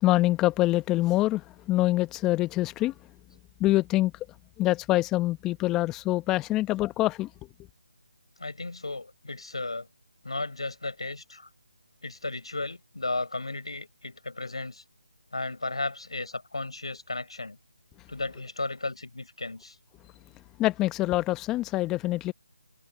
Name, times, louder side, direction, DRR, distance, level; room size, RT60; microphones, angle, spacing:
voice 1, 0.0-2.9 3.6-4.1 4.6-7.3 20.6-22.3, left 17 dB, 10° left, 0.9 m, -25 dB
voice 2, 8.4-9.9 10.2-11.5 12.0-14.8 15.3-17.6 18.1-19.8, left 2 dB, 75° left, 4.2 m, -34 dB
figure-of-eight pair, 155°, 3 cm